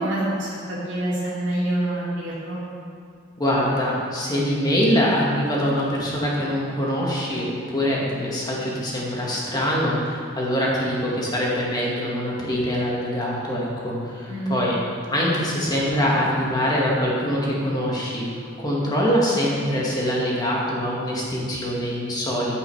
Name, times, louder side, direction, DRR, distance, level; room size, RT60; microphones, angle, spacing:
voice 1, 0.0-2.6 14.3-14.7, right 1 dB, 70° right, -7 dB, 2.8 m, -26 dB
voice 2, 3.4-14.8 15.1-18.3 18.6-22.6, equal, 20° left, -5 dB, 2.0 m, -24 dB
14.5 x 5.6 x 4.9 m, 2.2 s
head